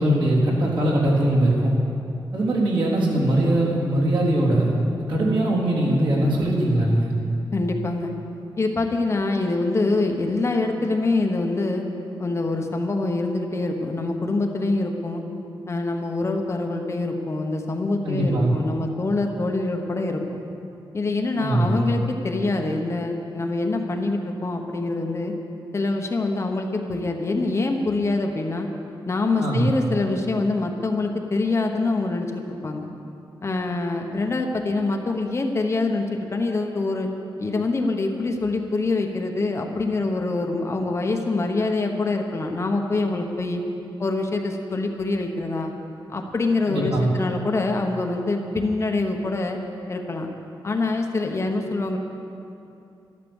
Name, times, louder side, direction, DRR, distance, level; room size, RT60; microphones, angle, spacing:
voice 1, 0.0-1.7 2.3-7.1 18.0-18.5 21.4-21.8 29.4-29.7 46.7-47.1, right 1 dB, 70° right, -6 dB, 3.7 m, -21 dB
voice 2, 7.5-8.1 8.6-11.8 12.2-15.2 15.7-20.4 20.9-25.3 25.7-28.7 29.1-32.9 33.4-37.1 37.4-43.6 44.0-45.7 46.1-49.6 49.9-50.3 50.6-52.0, left 2 dB, 35° left, 3 dB, 1.1 m, -25 dB
13.0 x 13.0 x 7.2 m, 2.7 s
wide cardioid pair, 175°, 9 cm